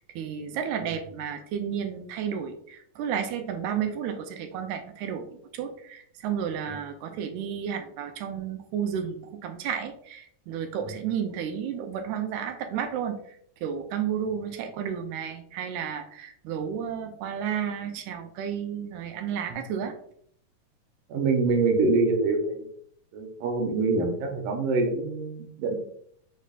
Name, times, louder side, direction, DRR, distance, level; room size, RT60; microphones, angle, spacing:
voice 1, 0.0-13.4 13.6-20.0, right 8 dB, 85° right, 6 dB, 2.0 m, -32 dB
voice 2, 21.1-22.7 23.1-25.8, right 3 dB, 70° right, 4 dB, 1.5 m, -25 dB
5.0 x 4.2 x 2.4 m, 0.65 s
omnidirectional pair, 3.4 m